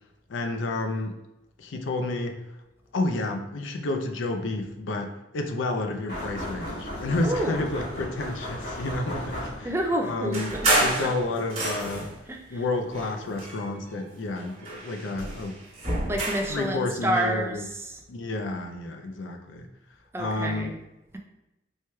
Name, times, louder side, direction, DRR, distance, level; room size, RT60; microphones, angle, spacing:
voice 1, 0.3-1.1 1.6-2.4 2.9-9.7 10.0-12.1 12.5-15.6 16.5-17.6 18.1-19.7 20.2-20.7, left 2 dB, 85° left, 4 dB, 0.5 m, -30 dB
sound 1, 6.1-9.9, equal, 55° left, 1.2 m, -36 dB
voice 2, 7.2-7.6 9.6-11.1 12.3-12.6 16.1-18.0 20.1-20.8, right 1 dB, 15° right, 3 dB, 0.3 m, -29 dB
sound 2, 10.3-12.2 12.9-14.0 14.4-16.6, right 2 dB, 35° right, 1.1 m, -28 dB
4.5 x 3.1 x 2.2 m, 0.97 s
head